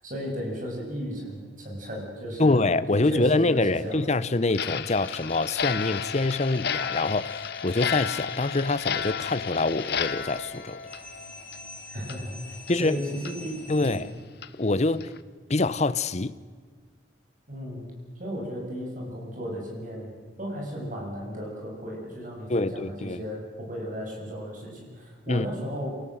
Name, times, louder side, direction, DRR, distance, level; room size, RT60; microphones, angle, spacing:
voice 1, 0.0-4.0 11.9-14.1 17.5-25.9, equal, 50° right, 7.5 m, -35 dB
voice 2, 2.4-10.8 12.7-13.0 13.7-14.1 14.5-15.1 15.5-16.4 22.5-23.2 25.3-25.4, left 2 dB, 40° left, 0.9 m, -25 dB
Clock, 4.5-11.7 12.0-12.2 12.7-12.8 13.2-13.3 13.8-13.9 14.4-14.5 15.0-15.2, left 7 dB, 65° left, 1.0 m, -32 dB
sound 1, 5.0-14.0, left 2 dB, 10° left, 3.0 m, -47 dB
27.0 x 18.5 x 8.0 m
head